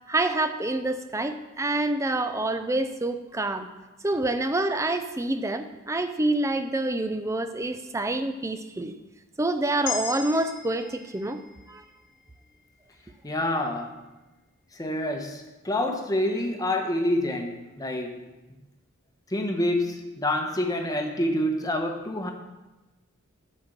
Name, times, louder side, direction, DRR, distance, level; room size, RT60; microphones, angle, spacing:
voice 1, 0.1-3.7 4.0-8.9 9.4-11.4 11.7-11.8, right 2 dB, 15° right, 8 dB, 0.5 m, -27 dB
sound 1, 9.8-14.1, left 7 dB, 55° left, 0.9 m, -39 dB
voice 2, 13.2-13.9 14.7-18.2 19.3-22.3, left 1 dB, 15° left, 3 dB, 0.9 m, -27 dB
11.0 x 4.4 x 6.6 m, 1.1 s
head